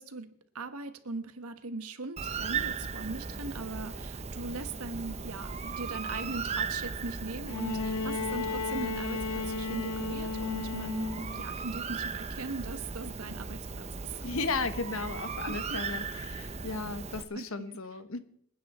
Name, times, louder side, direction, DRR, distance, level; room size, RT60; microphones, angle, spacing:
voice 1, 0.0-14.2 15.5-15.8 17.3-17.8, right 3 dB, 85° right, 9 dB, 1.4 m, -39 dB
Bird, 2.2-17.2, right 5 dB, 30° right, 0.7 m, -37 dB
Bowed string instrument, 7.5-11.5 12.7-12.8, left 4 dB, 90° left, 0.8 m, -34 dB
voice 2, 14.2-18.2, left 3 dB, 70° left, 10 dB, 1.2 m, -35 dB
26.5 x 9.4 x 4.3 m, 0.66 s
head